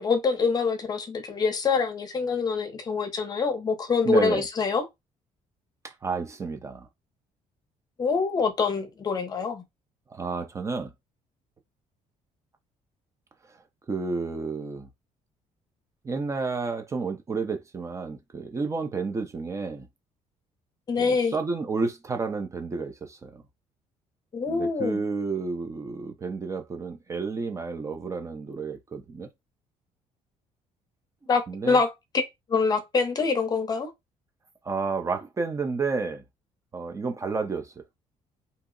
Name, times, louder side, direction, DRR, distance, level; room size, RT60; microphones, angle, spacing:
voice 1, 0.0-4.9 8.0-9.6 20.9-21.4 24.3-25.0 31.3-32.2 32.5-33.9, left 5 dB, 30° left, 0.6 m, -25 dB
voice 2, 4.0-4.5 5.8-6.9 10.1-10.9 13.9-14.9 16.0-19.9 21.0-23.4 24.5-29.3 31.5-31.8 34.6-36.2 36.7-37.7, right 4 dB, 25° right, 0.5 m, -31 dB
2.8 x 2.0 x 3.7 m
cardioid pair, 140°, 13 cm